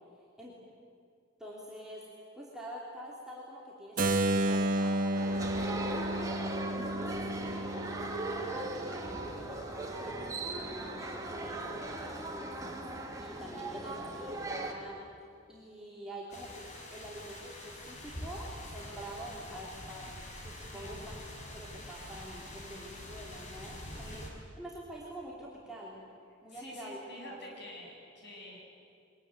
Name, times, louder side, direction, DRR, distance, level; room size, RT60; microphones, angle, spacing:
voice 1, 1.4-2.0 2.3-6.6 7.0-10.2 10.5-12.9 13.2-15.0 15.5-21.2 21.5-24.3 24.6-26.0 26.4-27.4, equal, 5° right, -6 dB, 3.5 m, -46 dB
Keyboard (musical), 4.0-9.8, right 1 dB, 45° right, 1.6 m, -32 dB
sound 1, 5.1-14.7, right 2 dB, 20° right, 2.7 m, -39 dB
sound 2, 16.3-24.3, left 1 dB, 40° left, 4.4 m, -45 dB
voice 2, 26.5-28.6, left 1 dB, 65° left, -1 dB, 7.9 m, -48 dB
23.5 x 21.0 x 9.3 m, 2.3 s
head